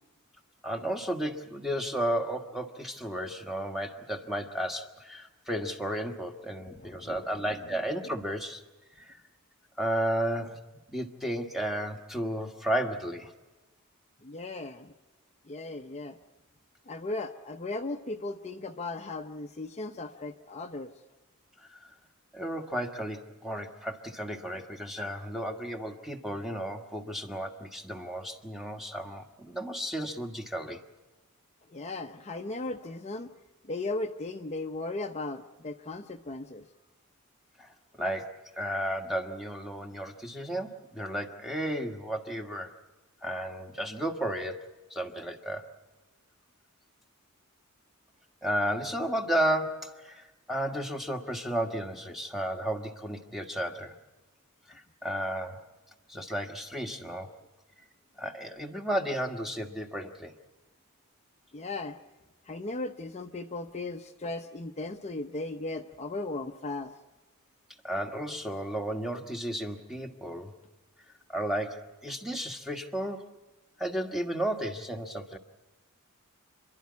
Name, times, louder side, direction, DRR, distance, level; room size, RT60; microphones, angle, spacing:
voice 1, 0.6-8.6 9.0-9.2 9.8-10.6 10.9-13.3 21.6-21.9 22.3-30.8 37.6-42.7 43.2-45.6 48.4-53.9 54.7-55.6 56.1-57.3 58.2-60.3 67.8-70.5 71.3-73.3 73.8-75.4, right 1 dB, ahead, 4 dB, 1.4 m, -33 dB
voice 2, 6.8-7.3 14.2-14.9 15.5-16.2 16.9-20.9 31.7-33.3 33.7-36.6 61.5-62.0 62.5-66.9, left 2 dB, 30° left, 4 dB, 0.7 m, -37 dB
29.0 x 11.5 x 9.5 m, 1.2 s
head